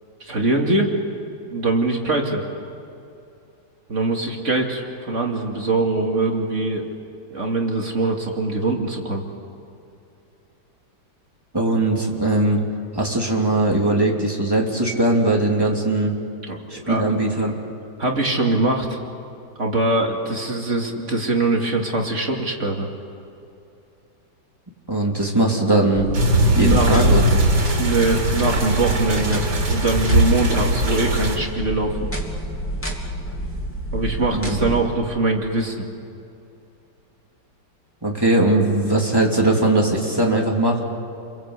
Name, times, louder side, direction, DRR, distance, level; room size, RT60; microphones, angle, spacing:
voice 1, 0.2-0.9 1.5-2.4 3.9-6.9 7.3-9.2 16.5-17.0 18.0-19.0 19.6-22.9 26.5-27.2 27.8-32.1 33.9-35.9, right 2 dB, 35° right, 0 dB, 2.8 m, -22 dB
voice 2, 11.5-12.6 12.9-16.1 16.7-17.5 24.9-26.1 26.5-27.2 34.3-34.7 38.0-40.8, right 2 dB, 10° right, -1 dB, 3.4 m, -20 dB
sound 1, 25.9-34.8, equal, 5° left, 2.7 m, -29 dB
sound 2, 26.1-31.4, right 1 dB, 70° right, 4.0 m, -20 dB
30.0 x 22.5 x 8.3 m, 2.7 s
omnidirectional pair, 2.1 m